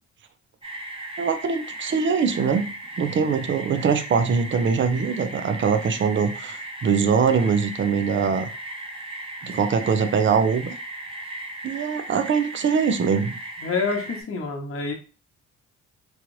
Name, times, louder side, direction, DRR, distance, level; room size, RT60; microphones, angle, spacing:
sound 1, 0.6-14.2, right 2 dB, 20° right, 0.8 m, -37 dB
voice 1, 1.2-2.7 3.0-8.5 9.4-10.7 11.6-13.4, right 6 dB, 40° right, 10 dB, 0.5 m, -22 dB
voice 2, 13.6-14.9, left 4 dB, 45° left, 2 dB, 0.9 m, -27 dB
3.0 x 2.5 x 3.1 m, 0.34 s
cardioid pair, 90°, 30 cm